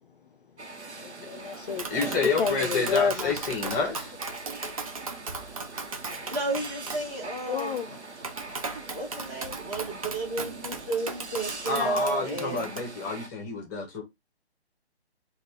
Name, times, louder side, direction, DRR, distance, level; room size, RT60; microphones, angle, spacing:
sound 1, 0.6-13.3, right 3 dB, 85° right, 1.0 m, -42 dB
voice 1, 1.0-1.9 2.2-3.3 7.5-8.0 11.8-12.0, left 5 dB, 50° left, 0.5 m, -29 dB
Tap, 1.5-12.8, right 4 dB, 35° right, 0.4 m, -38 dB
voice 2, 1.9-4.1 11.7-14.0, left 4 dB, 15° left, 0.8 m, -29 dB
voice 3, 6.3-7.8 8.9-12.6, right 2 dB, 15° right, 1.1 m, -32 dB
4.0 x 2.4 x 3.3 m
figure-of-eight pair, 140°, 33 cm